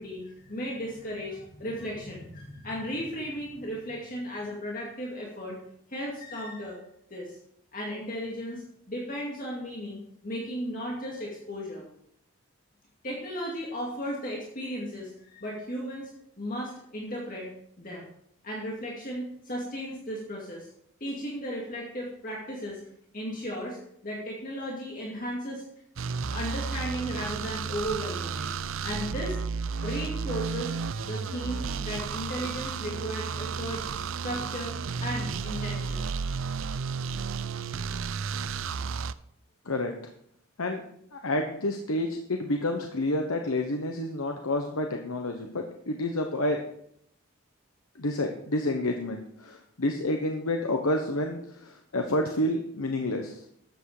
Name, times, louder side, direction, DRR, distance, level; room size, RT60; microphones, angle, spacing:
voice 1, 0.0-5.6 5.9-6.8 7.1-7.4 7.7-11.8 13.0-16.1 16.4-17.5 17.8-18.1 18.4-20.7 21.0-22.8 23.1-25.6 26.3-28.5 28.8-29.4 29.8-30.7 31.0-33.9 34.2-34.8 35.0-36.1, equal, 40° left, -3 dB, 2.3 m, -35 dB
sound 1, 26.0-39.1, right 5 dB, 70° right, 0.5 m, -32 dB
voice 2, 41.1-46.6 48.0-53.4, left 1 dB, 85° left, 3 dB, 1.2 m, -29 dB
13.0 x 8.3 x 4.9 m, 0.70 s
head